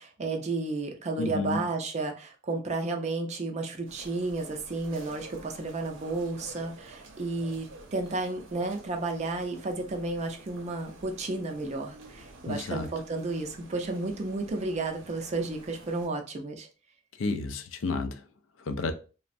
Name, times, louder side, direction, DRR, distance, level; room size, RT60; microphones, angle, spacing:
voice 1, 0.0-16.7, right 3 dB, 35° right, 0.4 m, -32 dB
voice 2, 1.2-1.6 12.5-12.9 17.2-18.2 18.7-18.9, left 3 dB, 75° left, 0.4 m, -31 dB
sound 1, 3.8-16.1, right 2 dB, 85° right, 0.6 m, -50 dB
3.2 x 2.0 x 2.5 m
head